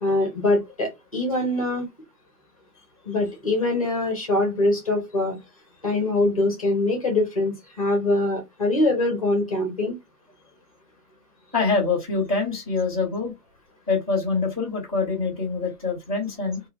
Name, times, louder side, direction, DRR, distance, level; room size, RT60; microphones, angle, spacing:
voice 1, 0.0-1.9 3.0-5.4 5.8-9.9, left 2 dB, 25° left, 0.5 m, -23 dB
voice 2, 11.5-13.3 13.9-16.6, left 4 dB, 25° right, 0.4 m, -25 dB
2.2 x 2.1 x 3.0 m
hypercardioid pair, 165°, 45 cm